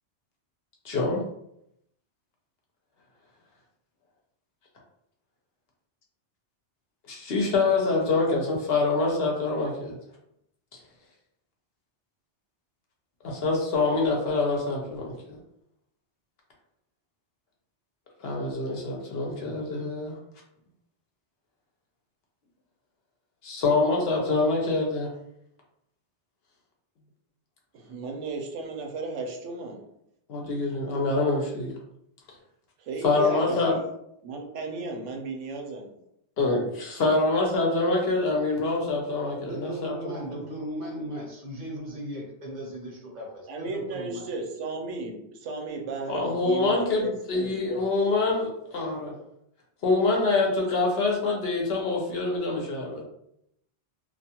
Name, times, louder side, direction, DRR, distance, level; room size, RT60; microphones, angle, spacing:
voice 1, 0.8-1.2 7.1-10.0 13.2-15.4 18.2-20.1 23.4-25.1 30.3-31.7 33.0-33.7 36.4-40.2 46.1-49.1 49.8-53.0, left 3 dB, 65° left, -1 dB, 0.8 m, -25 dB
voice 2, 27.7-29.8 32.8-33.9 34.2-35.9 43.5-47.9, right 3 dB, 85° right, 2 dB, 0.9 m, -34 dB
voice 3, 39.4-44.3, right 1 dB, 45° right, -3 dB, 0.8 m, -37 dB
2.4 x 2.3 x 2.8 m, 0.78 s
omnidirectional pair, 1.2 m